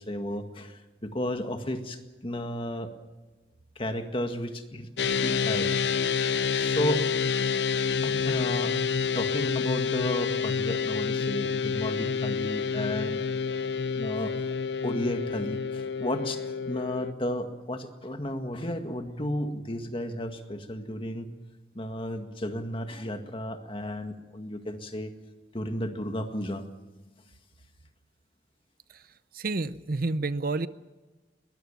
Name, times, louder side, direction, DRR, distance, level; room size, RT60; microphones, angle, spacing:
voice 1, 0.0-2.9 3.8-5.7 6.5-7.1 8.0-13.2 14.0-14.3 14.8-21.3 21.8-25.1 25.5-26.6, left 1 dB, 30° left, 6 dB, 1.9 m, -33 dB
sound 1, 5.0-17.1, left 6 dB, 70° left, 0.6 m, -28 dB
voice 2, 29.3-30.7, right 3 dB, 55° right, 15 dB, 0.7 m, -29 dB
22.0 x 20.5 x 7.4 m, 1.2 s
head